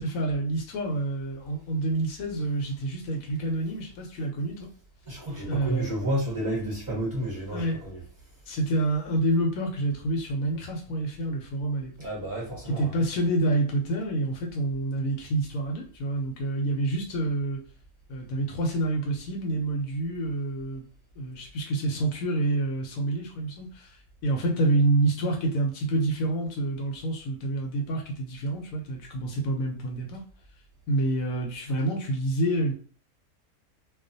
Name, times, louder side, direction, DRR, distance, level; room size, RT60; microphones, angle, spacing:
voice 1, 0.0-4.7 5.5-5.9 7.5-7.8 8.5-11.9 12.7-17.6 18.1-20.9 21.2-30.2 30.9-32.7, right 2 dB, 70° left, 0.9 m, -28 dB
voice 2, 5.0-8.4 12.0-13.0, right 1 dB, 40° right, 0.8 m, -31 dB
2.3 x 2.2 x 2.6 m
omnidirectional pair, 1.6 m